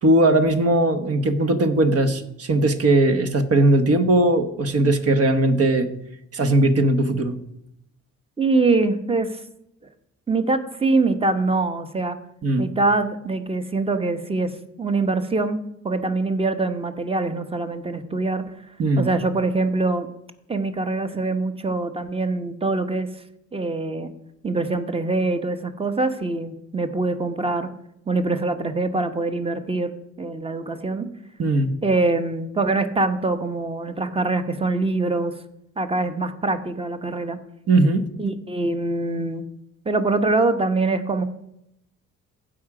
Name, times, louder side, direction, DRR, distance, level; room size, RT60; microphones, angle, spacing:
voice 1, 0.0-5.9 6.3-7.4 12.4-12.7 18.8-19.1 31.4-31.7 37.7-38.1, right 2 dB, 50° right, 9 dB, 1.2 m, -19 dB
voice 2, 8.4-9.4 10.3-12.2 12.6-14.5 14.8-15.6 15.8-18.4 19.0-20.1 20.5-23.1 23.5-24.1 24.4-27.7 28.1-29.9 30.2-31.1 31.8-35.3 35.8-37.4 38.2-39.5 39.8-41.2, right 3 dB, 20° right, 9 dB, 1.0 m, -23 dB
15.0 x 5.0 x 4.9 m, 0.81 s
cardioid pair, 90°, 30 cm